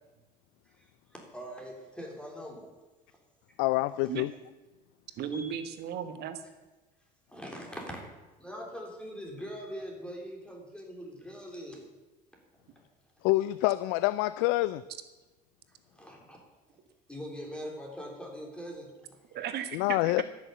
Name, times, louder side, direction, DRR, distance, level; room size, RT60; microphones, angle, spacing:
voice 1, 1.1-2.7 4.0-4.1 5.3-5.6 7.3-8.0 8.4-11.9 12.8-12.9 15.9-16.4 17.1-19.2, equal, 5° left, 0 dB, 3.5 m, -42 dB
voice 2, 3.6-4.3 13.2-14.8 19.7-20.2, left 18 dB, 70° left, 16 dB, 0.4 m, -26 dB
voice 3, 5.2-6.4 19.3-20.2, right 8 dB, 60° right, 10 dB, 1.4 m, -36 dB
11.0 x 7.1 x 8.2 m, 1.2 s
hypercardioid pair, 75°, 19 cm